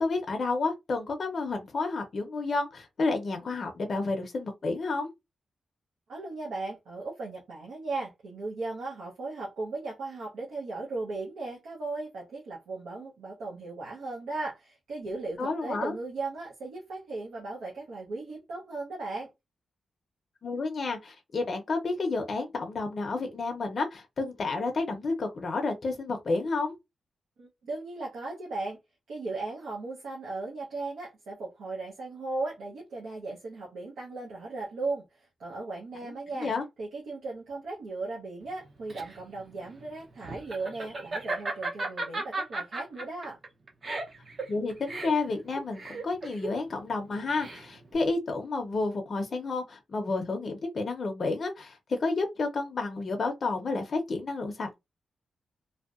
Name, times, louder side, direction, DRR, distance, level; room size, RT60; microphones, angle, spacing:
voice 1, 0.0-5.1 15.4-15.9 20.4-26.7 36.0-36.6 44.5-54.7, left 3 dB, 50° left, 0.5 m, -30 dB
voice 2, 6.1-19.3 27.4-28.8 29.1-36.5 36.8-43.4, right 3 dB, 90° right, 0.7 m, -37 dB
Laughter, 38.5-47.9, right 2 dB, 45° right, 0.6 m, -36 dB
2.6 x 2.1 x 2.4 m
wide cardioid pair, 115°, 0 cm